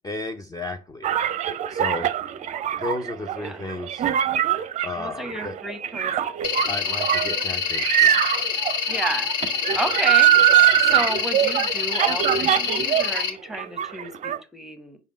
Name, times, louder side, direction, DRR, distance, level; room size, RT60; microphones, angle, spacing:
voice 1, 0.0-2.1 2.8-4.0 4.8-5.6 6.7-8.2, left 2 dB, 20° left, 7 dB, 0.6 m, -33 dB
sound 1, 1.0-13.2 13.5-14.4, right 11 dB, 35° right, 0.5 m, -22 dB
voice 2, 5.0-6.3 8.9-9.3 9.7-10.3 10.9-15.0, right 1 dB, ahead, 10 dB, 1.0 m, -32 dB
sound 2, 6.4-13.3, left 6 dB, 60° left, 1.1 m, -26 dB
5.2 x 3.5 x 5.2 m, 0.30 s
figure-of-eight pair, 65°, 21 cm